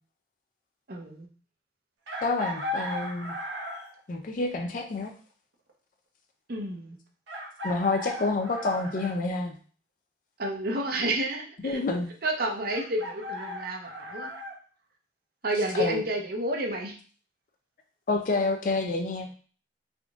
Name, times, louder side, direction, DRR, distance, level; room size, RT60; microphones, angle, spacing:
voice 1, 0.9-1.3 6.5-7.0 10.4-11.8 12.2-14.3 15.4-17.0, right 1 dB, 55° right, 3 dB, 0.6 m, -30 dB
Chicken rooster, 2.1-4.0 5.7-5.8 7.3-9.2 12.7-14.5, left 1 dB, 80° right, 0.8 m, -36 dB
voice 2, 2.2-3.3 4.1-5.1 7.6-9.5 11.6-12.1 15.8-16.0 18.1-19.3, left 3 dB, 45° left, 4 dB, 0.4 m, -28 dB
3.6 x 3.5 x 2.4 m, 0.41 s
head